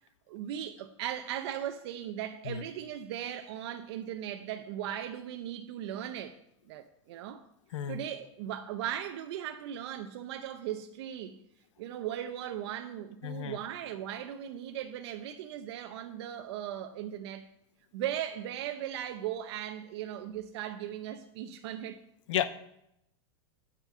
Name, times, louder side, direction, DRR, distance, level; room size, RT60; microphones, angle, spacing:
voice 1, 0.3-6.4 6.7-7.4 7.9-11.4 11.8-17.5 17.9-22.0, right 11 dB, 60° right, 0.8 m, -38 dB
voice 2, 13.2-13.6 22.3-22.5, left 10 dB, 85° left, 0.7 m, -32 dB
9.1 x 5.4 x 7.4 m
supercardioid pair, 155°, 15 cm